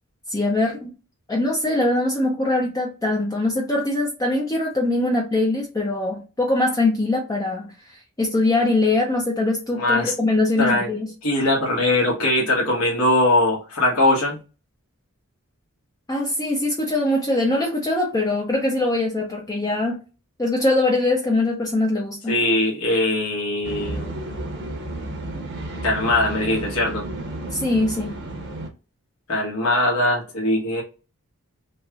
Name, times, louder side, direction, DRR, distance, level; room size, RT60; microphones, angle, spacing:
voice 1, 0.3-0.9 1.3-11.1 16.1-20.0 20.4-22.3 27.5-28.2, left 2 dB, 15° left, 0.4 m, -22 dB
voice 2, 9.7-10.1 10.6-10.9 11.2-14.4 22.3-24.1 25.8-27.0 29.3-30.8, left 1 dB, 70° left, 1.2 m, -21 dB
sound 1, 23.6-28.7, right 1 dB, 50° right, 0.8 m, -32 dB
3.1 x 2.9 x 2.3 m
head